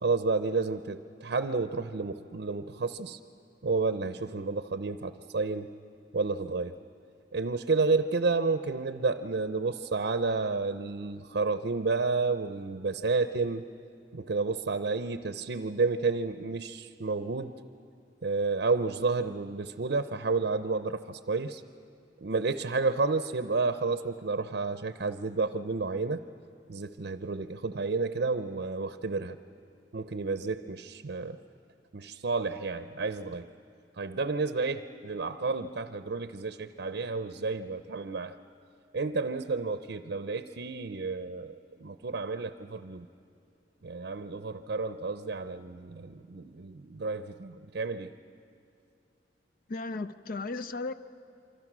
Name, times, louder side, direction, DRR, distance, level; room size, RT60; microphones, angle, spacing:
voice 1, 0.0-3.2 3.6-5.7 6.1-6.7 7.3-13.7 14.1-17.5 18.2-21.6 22.2-26.2 26.7-29.4 29.9-31.4 31.9-33.5 34.0-38.3 38.9-43.1 43.8-48.1, right 4 dB, 65° right, 0.6 m, -31 dB
voice 2, 49.7-50.9, left 3 dB, 50° left, 0.5 m, -35 dB
27.5 x 24.5 x 6.1 m
head